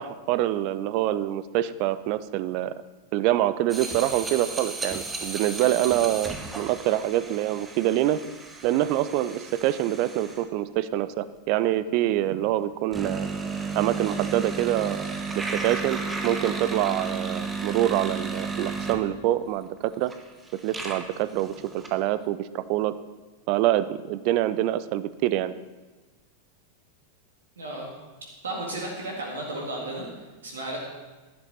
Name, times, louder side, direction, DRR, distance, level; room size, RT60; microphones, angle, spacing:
voice 1, 0.0-2.7 3.1-8.2 8.6-13.3 13.8-15.1 15.4-16.0 16.2-20.1 20.5-22.9 23.5-25.5, right 14 dB, 45° right, 15 dB, 0.5 m, -25 dB
sound 1, 3.7-10.4 12.9-19.1 19.8-19.9 20.1-21.9, right 4 dB, 15° right, 1.2 m, -33 dB
voice 2, 27.6-27.9 28.4-30.1 30.4-30.8, right 1 dB, 70° right, -1 dB, 2.0 m, -33 dB
11.5 x 10.5 x 4.2 m, 1.2 s
figure-of-eight pair, 90°, 0 cm